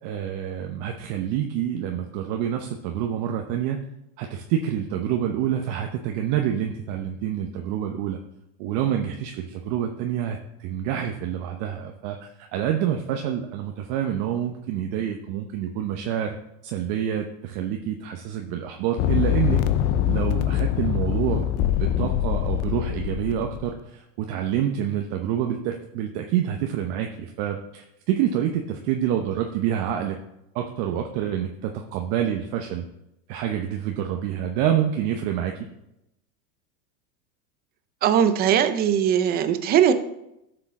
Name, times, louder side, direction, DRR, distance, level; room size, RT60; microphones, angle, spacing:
voice 1, 0.0-3.8 4.2-8.2 8.6-16.3 16.6-19.6 20.1-21.5 21.8-30.2 30.5-32.9 33.3-35.5, right 10 dB, 50° right, 4 dB, 0.9 m, -27 dB
sound 1, 19.0-23.7, left 11 dB, 30° left, 0.5 m, -24 dB
voice 2, 38.0-39.9, right 9 dB, 20° right, 11 dB, 0.4 m, -20 dB
11.5 x 6.8 x 3.7 m, 0.85 s
supercardioid pair, 135°, 48 cm